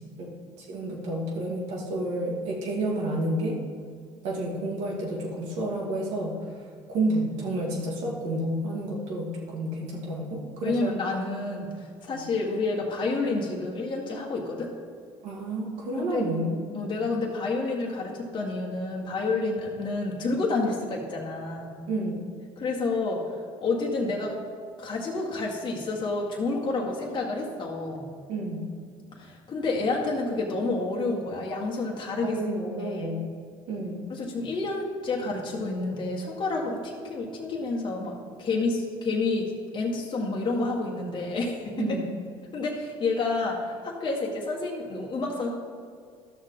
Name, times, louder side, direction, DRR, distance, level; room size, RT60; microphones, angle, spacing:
voice 1, 0.6-3.6 4.2-6.4 6.9-10.9 12.1-12.2 15.2-16.6 21.9-22.2 28.3-28.6 32.2-33.3 33.7-34.0 41.8-42.1, right 1 dB, 70° right, -2 dB, 2.2 m, -30 dB
voice 2, 10.6-14.7 16.0-16.2 16.7-21.7 22.6-23.2 23.6-24.4 24.8-28.1 29.1-32.4 32.8-33.2 34.1-42.0 42.5-45.5, left 3 dB, 40° left, -2 dB, 1.5 m, -29 dB
12.0 x 6.5 x 3.8 m, 2.1 s
supercardioid pair, 75°, 12 cm